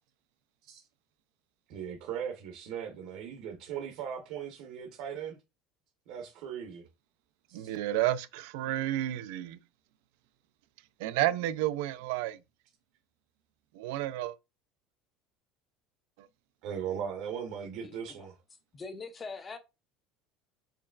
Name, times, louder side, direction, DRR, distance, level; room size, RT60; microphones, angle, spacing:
voice 1, 1.7-5.4 6.1-6.9 7.5-7.7 16.6-18.4, right 8 dB, 60° right, 0.8 m, -38 dB
voice 2, 7.5-9.6 11.0-12.4 13.7-14.4, right 14 dB, 85° right, 0.4 m, -31 dB
voice 3, 17.8-18.3 18.7-19.6, left 4 dB, 15° left, 0.5 m, -43 dB
4.6 x 3.1 x 2.4 m
cardioid pair, 175°, 0 cm